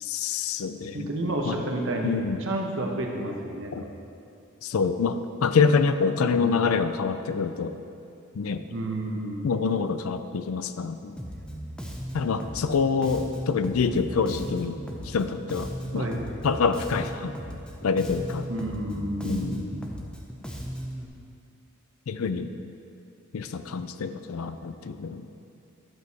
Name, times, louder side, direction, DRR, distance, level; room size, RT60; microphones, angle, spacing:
voice 1, 0.0-1.1 1.4-1.5 2.0-2.4 3.7-3.8 4.6-7.7 8.4-8.6 9.4-11.2 12.1-14.8 15.1-16.1 16.4-17.3 17.8-18.5 19.2-19.7 22.1-22.5 23.3-25.3, left 5 dB, 80° left, 11 dB, 0.4 m, -26 dB
voice 2, 0.9-2.1 2.4-3.9 6.2-6.7 8.7-9.5 15.9-16.3 18.5-19.9, right 1 dB, 65° right, 1 dB, 1.1 m, -31 dB
Bass guitar, 11.2-21.1, equal, 5° left, 0.7 m, -36 dB
11.0 x 6.3 x 4.2 m, 2.7 s
head